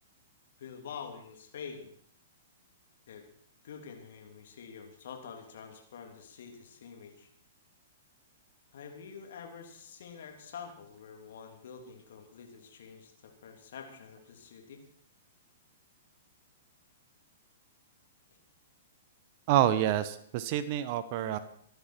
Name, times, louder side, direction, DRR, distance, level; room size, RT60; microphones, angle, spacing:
voice 1, 0.6-1.9 3.1-3.3 3.6-7.3 8.7-14.8, left 6 dB, 60° left, 3 dB, 3.3 m, -47 dB
voice 2, 19.5-21.4, right 11 dB, 45° right, 14 dB, 1.0 m, -27 dB
24.5 x 10.5 x 4.6 m, 0.63 s
figure-of-eight pair, 110°, 0 cm